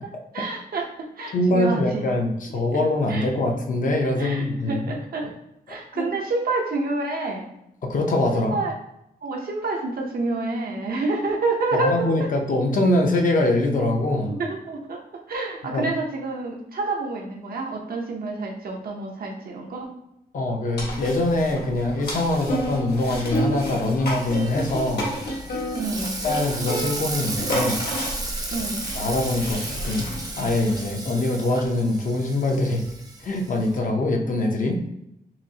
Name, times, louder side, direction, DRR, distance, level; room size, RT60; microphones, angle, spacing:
voice 1, 0.3-0.9 1.2-2.0 3.1-3.3 4.2-5.3 5.7-7.5 8.3-8.7 9.2-11.9 14.3-15.0 15.3-19.9 25.7-26.2 28.5-28.8, right 3 dB, 65° right, 0 dB, 0.8 m, -28 dB
voice 2, 1.3-4.9 5.7-6.1 7.8-8.6 11.7-14.4 15.7-15.9 20.3-25.1 26.2-27.9 28.9-30.1 30.4-32.9 33.2-34.8, left 2 dB, 55° left, 2 dB, 0.7 m, -23 dB
sound 1, 20.8-30.9, equal, 80° left, 1.4 m, -31 dB
Frying (food), 24.1-33.8, right 2 dB, 25° right, 0.6 m, -34 dB
5.7 x 2.1 x 2.8 m, 0.82 s
wide cardioid pair, 105°, 16 cm